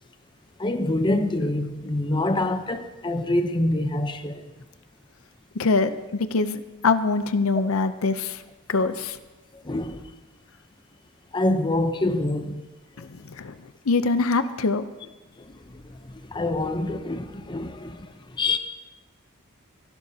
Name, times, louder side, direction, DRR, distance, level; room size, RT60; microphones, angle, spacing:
voice 1, 0.6-4.4 9.6-10.0 11.3-12.6 15.4-15.5 15.7-16.0 16.3-18.6, left 2 dB, 20° left, 0.7 m, -26 dB
voice 2, 5.6-8.4 8.7-9.2 13.0-13.1 13.4-13.5 13.9-14.8, left 4 dB, 70° left, 0.6 m, -23 dB
27.0 x 11.5 x 2.8 m
head